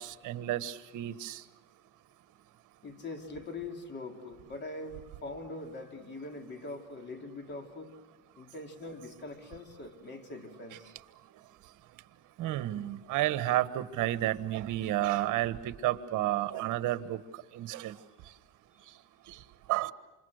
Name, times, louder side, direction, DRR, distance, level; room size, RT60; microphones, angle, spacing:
voice 1, 0.0-1.4 12.4-17.2 17.5-17.9 19.7-19.9, right 14 dB, 65° right, 12 dB, 1.5 m, -31 dB
voice 2, 2.8-7.9 8.3-10.9, left 2 dB, 30° left, 4 dB, 3.3 m, -42 dB
28.5 x 27.0 x 6.6 m, 1.2 s
cardioid pair, 125°, 33 cm